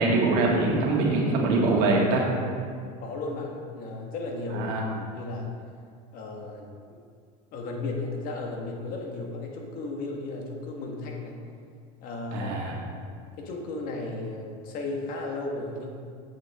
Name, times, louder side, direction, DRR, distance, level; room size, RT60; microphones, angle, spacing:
voice 1, 0.0-2.3 4.5-4.9 12.3-12.7, right 2 dB, 70° right, -1 dB, 1.9 m, -23 dB
voice 2, 3.0-4.7 5.1-5.5 6.1-7.0 7.5-11.4 12.0-12.8 13.4-15.9, left 2 dB, 50° left, 1 dB, 1.6 m, -35 dB
9.0 x 7.5 x 3.7 m, 2.2 s
supercardioid pair, 130°, 18 cm